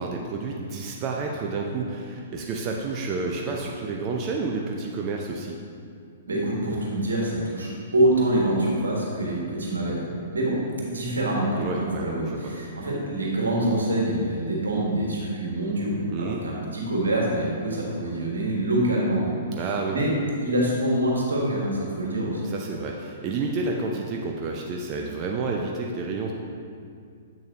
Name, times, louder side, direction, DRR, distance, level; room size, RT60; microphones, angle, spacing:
voice 1, 0.0-5.6 11.6-12.5 16.1-16.4 19.5-20.0 22.4-26.3, right 3 dB, 30° right, 0 dB, 0.6 m, -30 dB
voice 2, 6.3-20.1 20.4-22.4, right 1 dB, 75° right, -3 dB, 1.7 m, -25 dB
7.8 x 6.6 x 3.0 m, 2.3 s
figure-of-eight pair, 115°, 0 cm